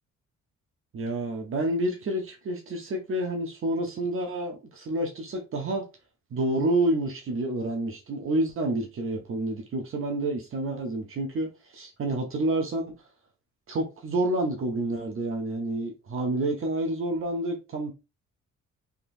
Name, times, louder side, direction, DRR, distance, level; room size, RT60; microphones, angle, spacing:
voice 1, 0.9-5.8 6.3-12.9 13.7-17.9, right 1 dB, 45° right, 0.8 m, -29 dB
3.6 x 3.0 x 2.5 m
cardioid pair, 135°, 29 cm